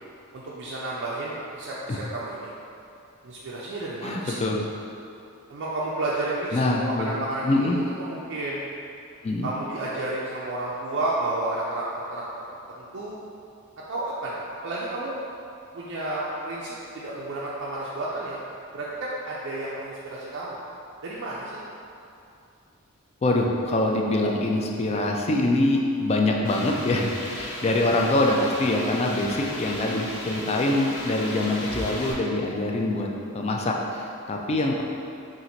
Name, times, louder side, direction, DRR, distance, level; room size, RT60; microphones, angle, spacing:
voice 1, 0.3-2.5 3.2-4.4 5.5-8.6 9.4-12.4 12.8-13.2 13.9-15.2 15.7-18.4 18.7-20.6 21.0-21.7, right 2 dB, 60° right, -6 dB, 0.4 m, -31 dB
voice 2, 4.0-4.6 6.5-7.2 7.4-7.8 9.2-9.5 23.2-34.8, left 2 dB, 30° left, 0 dB, 0.3 m, -24 dB
sound 1, 26.4-32.1, left 1 dB, 90° left, 0.9 m, -36 dB
4.3 x 2.5 x 3.9 m, 2.6 s
head